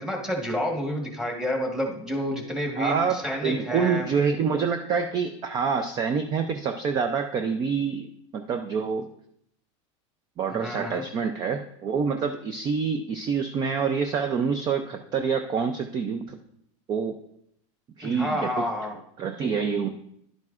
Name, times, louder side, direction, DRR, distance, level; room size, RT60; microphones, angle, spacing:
voice 1, 0.0-4.1 10.6-11.0 18.0-19.0, equal, 5° right, 1 dB, 1.4 m, -29 dB
voice 2, 2.8-8.1 8.3-9.1 10.4-16.4 16.9-17.2 18.0-18.6 19.2-19.9, right 6 dB, 25° right, 7 dB, 0.4 m, -26 dB
11.0 x 9.0 x 2.4 m, 0.73 s
supercardioid pair, 150°, 16 cm